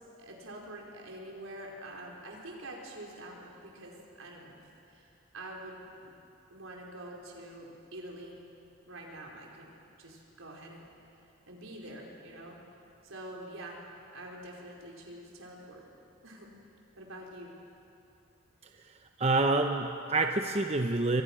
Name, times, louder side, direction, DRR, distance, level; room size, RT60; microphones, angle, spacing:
voice 1, 0.2-4.6 4.9-6.1 6.5-8.4 8.8-10.8 11.5-12.6 13.0-13.8 14.1-15.8 16.2-16.5 17.0-17.5, right 1 dB, 75° right, -1 dB, 4.7 m, -46 dB
voice 2, 18.8-21.2, right 2 dB, 30° right, 5 dB, 0.8 m, -28 dB
28.5 x 24.0 x 6.2 m, 2.8 s
head